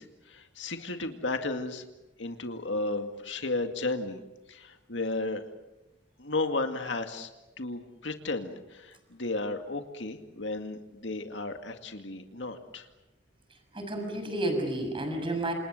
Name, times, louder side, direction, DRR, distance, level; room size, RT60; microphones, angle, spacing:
voice 1, 0.0-1.8 2.2-4.2 4.5-5.4 6.2-7.3 7.6-12.9, left 2 dB, 75° left, 6 dB, 2.1 m, -34 dB
voice 2, 13.5-15.5, right 1 dB, 30° right, 5 dB, 6.6 m, -31 dB
28.0 x 28.0 x 6.6 m, 1.0 s
head